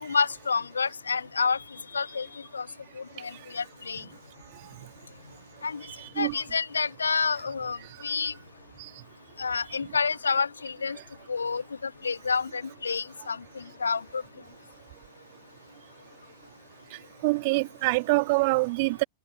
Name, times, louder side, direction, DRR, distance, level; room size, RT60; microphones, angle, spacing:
voice 1, 0.0-1.6 1.9-2.3 2.5-2.7 3.0-4.0 5.6-5.8 6.2-7.8 8.0-8.3 9.4-11.0 11.3-13.4 13.8-14.2, left 5 dB, 75° left, 1.3 m, -28 dB
voice 2, 6.0-6.3 17.2-19.0, right 25 dB, 50° right, 1.9 m, -25 dB
figure-of-eight pair, 90°, 0 cm